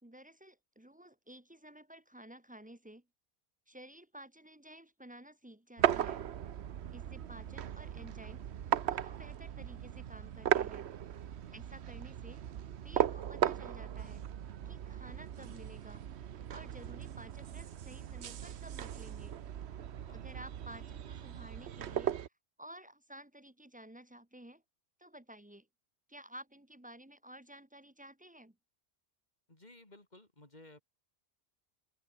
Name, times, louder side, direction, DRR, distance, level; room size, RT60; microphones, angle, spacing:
voice 1, 0.0-3.1 3.7-6.2 6.9-8.5 8.8-10.9 11.5-12.5 12.8-14.2 14.6-16.0 16.5-19.4 20.1-22.2 22.6-24.6 25.0-25.7 26.1-28.6, right 1 dB, 10° right, 1.1 m, -53 dB
sound 1, 5.8-22.3, right 10 dB, 85° right, 1.1 m, -37 dB
voice 2, 20.1-20.5 29.5-30.8, left 2 dB, 40° left, 4.3 m, -57 dB
open air
omnidirectional pair, 1.1 m